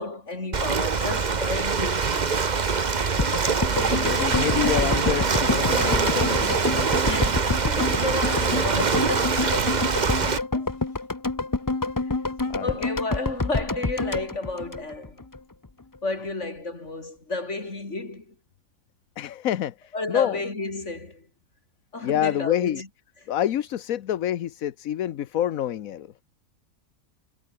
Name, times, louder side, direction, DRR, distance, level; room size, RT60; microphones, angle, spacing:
voice 1, 0.0-2.5 7.0-10.2 10.5-10.7 12.6-15.2 16.0-18.3 19.9-21.3 21.9-22.9, left 2 dB, 55° left, 4.4 m, -32 dB
Ocean, 0.5-10.4, right 5 dB, 35° right, 1.2 m, -24 dB
sound 1, 3.2-15.4 15.6-15.7, left 3 dB, 15° left, 0.8 m, -28 dB
voice 2, 3.7-6.9 12.5-12.9 19.2-20.4 22.0-22.8 23.3-26.2, left 11 dB, 75° left, 1.3 m, -27 dB
omnidirectional pair, 1.5 m